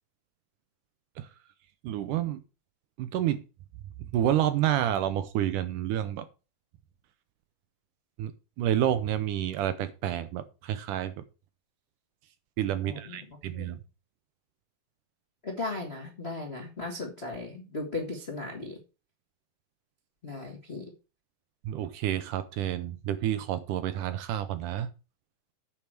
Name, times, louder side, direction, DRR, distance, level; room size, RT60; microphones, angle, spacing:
voice 1, 1.8-2.4 3.0-3.4 4.1-6.3 8.2-8.3 8.6-11.2 12.6-13.8 21.7-24.9, right 11 dB, 75° right, 2.0 m, -29 dB
voice 2, 12.8-13.7 15.4-18.8 20.2-20.9, left 2 dB, 45° left, 0.8 m, -37 dB
8.8 x 4.7 x 7.6 m
omnidirectional pair, 4.1 m